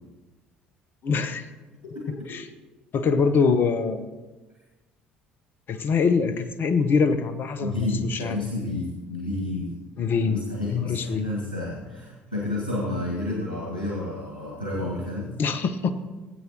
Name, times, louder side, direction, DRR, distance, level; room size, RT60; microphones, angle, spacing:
voice 1, 1.0-1.5 2.3-2.4 2.9-4.1 5.7-7.7 8.1-8.4 10.0-10.4 10.7-11.3 15.4-15.9, left 5 dB, 45° left, 10 dB, 0.9 m, -23 dB
voice 2, 7.6-9.7 10.2-15.3, left 2 dB, 85° left, -3 dB, 1.5 m, -30 dB
18.0 x 8.2 x 2.9 m, 1.2 s
figure-of-eight pair, 55°, 5 cm